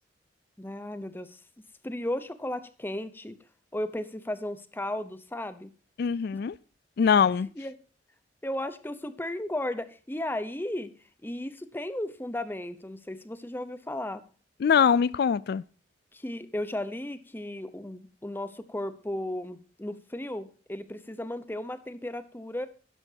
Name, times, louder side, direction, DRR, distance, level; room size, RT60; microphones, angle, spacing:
voice 1, 0.6-1.4 1.8-3.4 3.7-5.7 7.6-7.7 8.4-10.9 11.2-14.2 16.1-22.7, left 1 dB, 10° left, 0.8 m, -35 dB
voice 2, 6.0-6.6 7.0-7.5 14.6-15.6, left 6 dB, 60° left, 0.3 m, -22 dB
11.5 x 11.0 x 2.8 m
head